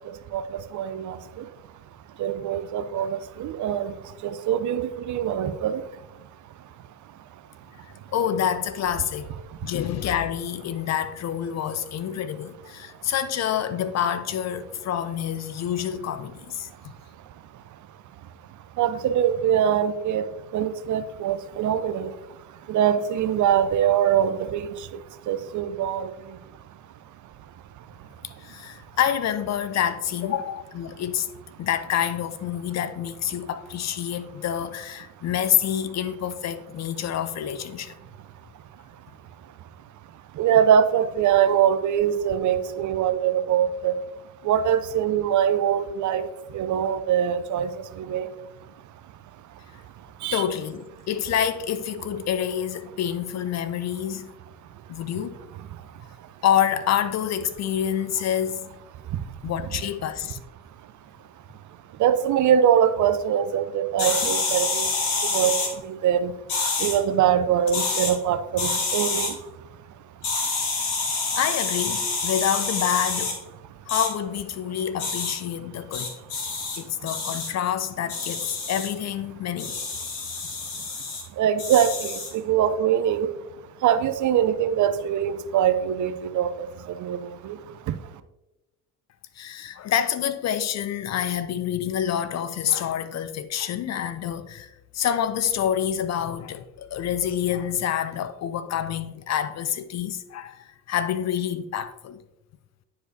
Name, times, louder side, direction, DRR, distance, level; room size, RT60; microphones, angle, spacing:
voice 1, 0.7-1.2 2.2-3.9 4.2-5.8 18.8-20.3 20.5-22.1 22.7-24.6 25.3-26.1 40.4-44.0 44.4-46.2 46.5-47.7 48.0-48.3 50.2-50.4 62.0-64.9 65.3-65.5 65.9-66.3 66.8-69.3 81.4-83.3 83.8-86.5 87.0-87.2 87.4-87.5, right 9 dB, 40° right, 0.5 m, -23 dB
voice 2, 8.1-9.3 9.6-16.7 28.4-31.3 31.6-37.9 50.3-54.3 54.9-55.4 56.4-58.7 59.4-60.4 71.4-73.4 73.9-76.1 76.8-79.8 89.4-102.2, left 9 dB, 35° left, 0.5 m, -27 dB
sound 1, 64.0-65.7 66.5-67.0 67.6-68.1 68.6-69.3 70.2-73.3 73.9-74.1 75.0-75.3 75.9-76.8 77.1-77.5 78.1-78.9 79.6-81.2 81.6-82.3, left 4 dB, 65° left, 1.7 m, -27 dB
9.7 x 4.8 x 2.7 m
hypercardioid pair, 55°, 46 cm